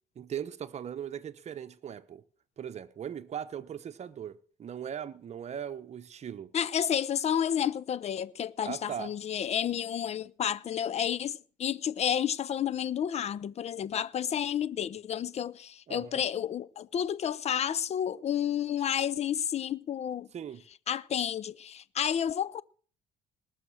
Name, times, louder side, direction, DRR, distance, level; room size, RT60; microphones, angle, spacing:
voice 1, 0.2-2.2 2.6-6.5 8.6-9.1 15.9-16.2 20.3-20.6, right 9 dB, 40° right, 0.9 m, -39 dB
voice 2, 6.5-20.3 20.9-22.6, left 9 dB, 40° left, 0.5 m, -31 dB
19.5 x 6.6 x 6.2 m
cardioid pair, 110°, 17 cm